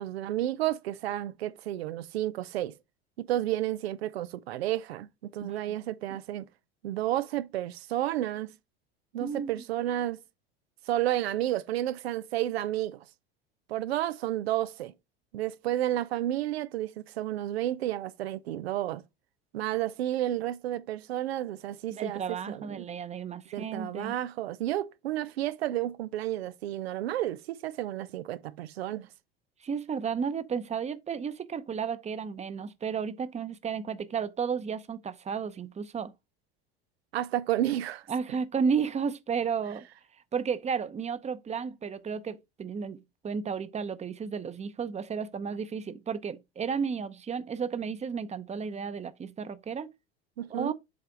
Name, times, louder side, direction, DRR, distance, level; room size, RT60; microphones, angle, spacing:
voice 1, 0.0-2.7 3.3-6.5 6.8-8.5 9.1-10.2 10.9-13.0 13.7-14.9 15.3-19.0 19.5-22.2 22.5-22.9 23.5-29.1 37.1-38.0 50.4-50.7, right 13 dB, 90° right, 0.6 m, -31 dB
voice 2, 5.4-5.8 9.2-9.6 21.9-24.1 29.6-36.1 38.1-39.9 40.3-49.9 50.5-50.7, right 6 dB, 20° right, 0.8 m, -33 dB
7.8 x 3.3 x 3.8 m
hypercardioid pair, 85°, 30 cm